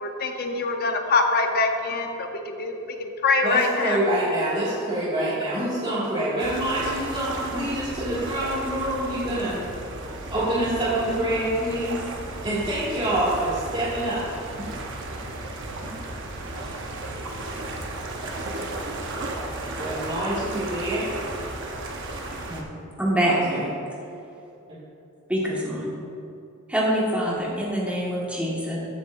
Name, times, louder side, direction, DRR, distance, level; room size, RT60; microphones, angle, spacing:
voice 1, 0.0-2.7 3.0-4.0, left 3 dB, 45° left, 4 dB, 0.8 m, -24 dB
voice 2, 3.4-9.6 10.3-12.0 12.4-14.2 15.8-15.9 19.8-21.1 23.2-23.6, right 1 dB, 30° right, -13 dB, 2.1 m, -26 dB
sound 1, 6.4-22.6, right 2 dB, 55° right, 0.9 m, -34 dB
voice 3, 23.0-23.7 25.3-25.9 26.7-28.8, equal, 5° right, -5 dB, 1.6 m, -25 dB
15.0 x 7.0 x 2.6 m, 2.7 s
head